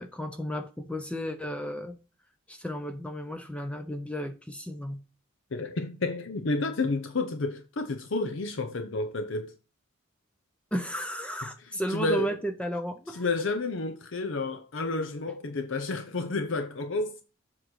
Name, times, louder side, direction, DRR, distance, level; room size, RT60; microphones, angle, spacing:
voice 1, 0.0-2.0 2.5-5.0 10.7-13.2, equal, 5° left, 0.5 m, -33 dB
voice 2, 5.5-9.5 11.9-12.4 13.1-17.2, left 3 dB, 65° left, 0.7 m, -30 dB
7.6 x 3.8 x 6.2 m
head